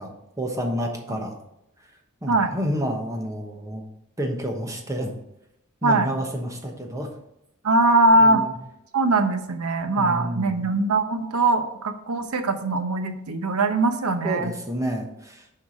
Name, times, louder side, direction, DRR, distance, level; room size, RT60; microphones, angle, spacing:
voice 1, 0.0-1.4 2.2-3.8 4.2-5.1 5.8-7.1 8.2-8.6 10.0-10.7 14.2-15.5, equal, 15° right, 2 dB, 1.1 m, -29 dB
voice 2, 7.6-8.4 8.9-14.5, right 2 dB, 80° right, 8 dB, 0.8 m, -21 dB
7.3 x 4.7 x 5.1 m, 0.82 s
head